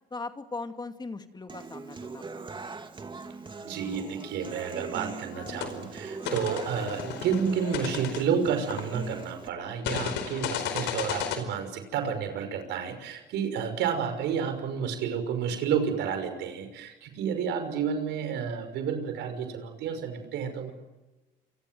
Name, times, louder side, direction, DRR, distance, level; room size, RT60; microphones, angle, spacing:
voice 1, 0.1-2.5, left 3 dB, 25° left, 7 dB, 2.5 m, -39 dB
Human voice / Acoustic guitar, 1.5-9.5, right 4 dB, 25° right, 2.9 m, -41 dB
voice 2, 3.6-20.7, right 7 dB, 80° right, 8 dB, 5.9 m, -30 dB
sound 1, 5.3-5.7 6.2-9.2 9.8-11.4, left 8 dB, 80° left, 4.7 m, -34 dB
28.5 x 25.0 x 7.8 m, 1.1 s
supercardioid pair, 80°, 18 cm